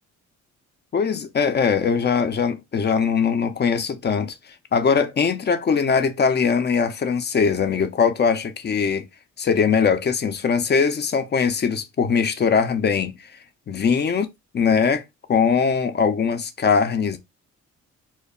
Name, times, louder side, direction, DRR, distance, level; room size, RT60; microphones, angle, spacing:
voice 1, 0.9-4.3 4.7-9.1 9.4-13.1 13.7-14.3 14.5-15.0 15.3-17.2, left 6 dB, 35° left, 0.5 m, -21 dB
2.2 x 2.1 x 3.6 m
cardioid pair, 90°, 30 cm